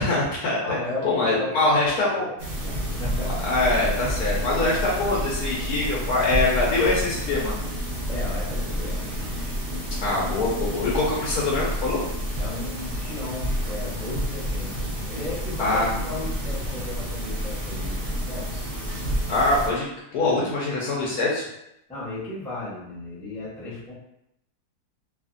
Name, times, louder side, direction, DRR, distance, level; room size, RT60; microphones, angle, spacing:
voice 1, 0.0-0.8 1.0-2.3 3.4-7.5 10.0-12.0 15.6-15.9 19.3-19.8 20.1-21.4, left 2 dB, 70° left, -5 dB, 1.1 m, -23 dB
voice 2, 0.6-2.3 2.6-3.3 4.2-4.4 8.1-9.5 12.4-18.5 20.2-20.5 21.9-23.9, left 2 dB, 5° left, -10 dB, 0.6 m, -35 dB
sound 1, 2.4-19.7, equal, 40° right, 0.8 m, -29 dB
2.7 x 2.4 x 2.4 m, 0.81 s
omnidirectional pair, 1.7 m